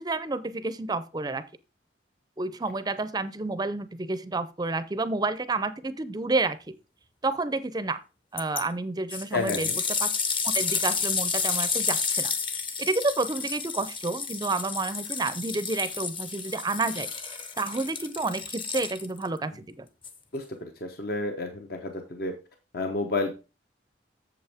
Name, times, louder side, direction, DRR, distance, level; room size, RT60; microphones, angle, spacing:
voice 1, 0.0-1.4 2.4-6.8 7.2-8.0 8.3-9.7 10.0-10.1 10.4-12.3 12.8-17.1 17.6-19.9, right 3 dB, 20° right, 14 dB, 0.5 m, -30 dB
sound 1, 8.4-8.6 9.1-19.3 20.0-20.1, left 5 dB, 30° left, 0.8 m, -30 dB
voice 2, 9.3-9.8 20.3-22.3 22.7-23.3, left 3 dB, 55° left, 5 dB, 0.9 m, -30 dB
8.1 x 7.2 x 3.5 m, 0.30 s
head